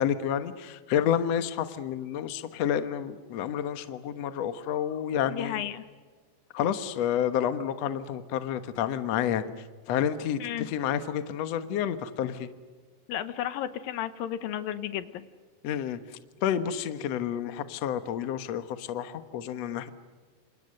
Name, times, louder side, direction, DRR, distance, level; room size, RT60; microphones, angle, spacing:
voice 1, 0.0-5.7 6.5-9.5 9.9-12.5 15.6-16.0 16.4-19.9, left 9 dB, 60° left, 10 dB, 2.0 m, -29 dB
voice 2, 5.3-5.9 10.4-10.7 13.1-15.3, left 11 dB, 80° left, 12 dB, 2.7 m, -33 dB
28.5 x 27.5 x 6.6 m, 1.5 s
omnidirectional pair, 4.2 m